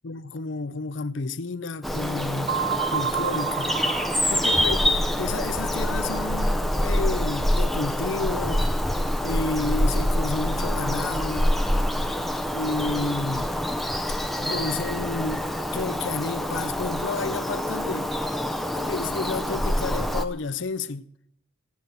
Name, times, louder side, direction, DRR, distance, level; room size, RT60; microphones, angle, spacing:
voice 1, 0.0-2.6 2.9-3.7 4.3-4.8 5.2-8.7 9.2-11.6 12.5-13.5 14.4-15.5 15.7-18.1 18.7-21.1, left 3 dB, 60° left, 0.6 m, -31 dB
Bird vocalization bird call bird song, 1.8-20.2, equal, ahead, 0.6 m, -26 dB
sound 1, 2.5-5.1, right 8 dB, 50° right, 0.5 m, -29 dB
17.5 x 9.5 x 6.7 m
head